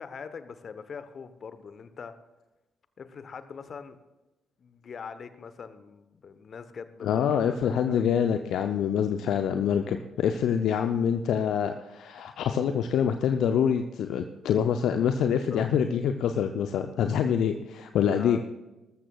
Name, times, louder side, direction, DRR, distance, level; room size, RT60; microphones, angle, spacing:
voice 1, 0.0-2.1 3.0-4.0 4.6-8.1 15.2-15.6 18.0-18.4, left 6 dB, 50° left, 11 dB, 1.0 m, -42 dB
voice 2, 7.0-18.4, left 8 dB, 65° left, 7 dB, 0.6 m, -26 dB
20.0 x 13.5 x 2.4 m, 1.1 s
hypercardioid pair, 45°, 0 cm